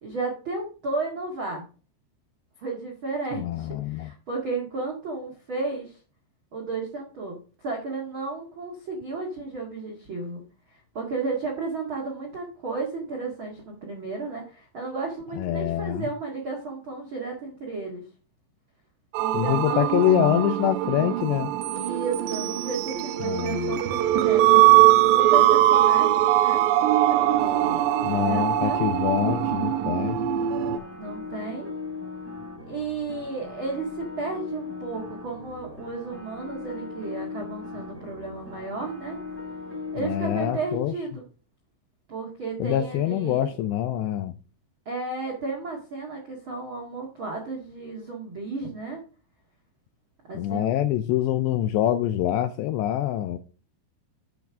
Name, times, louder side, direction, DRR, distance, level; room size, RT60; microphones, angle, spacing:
voice 1, 0.0-1.6 2.6-6.0 6.5-10.4 10.7-18.0 19.2-20.0 21.7-24.6 25.1-26.6 27.3-29.0 30.6-31.7 32.7-39.2 39.9-41.2 42.1-43.5 44.8-49.0 50.3-50.8, right 3 dB, 65° right, 1.2 m, -33 dB
voice 2, 3.4-4.1 15.3-16.1 19.3-21.5 23.2-23.8 28.0-30.2 40.0-40.9 42.6-44.3 50.3-53.4, left 12 dB, 85° left, 2.5 m, -25 dB
sound 1, 19.1-30.8, right 14 dB, 85° right, 2.5 m, -21 dB
sound 2, 27.2-40.6, left 4 dB, 5° left, 5.2 m, -39 dB
9.2 x 7.9 x 3.5 m
omnidirectional pair, 5.5 m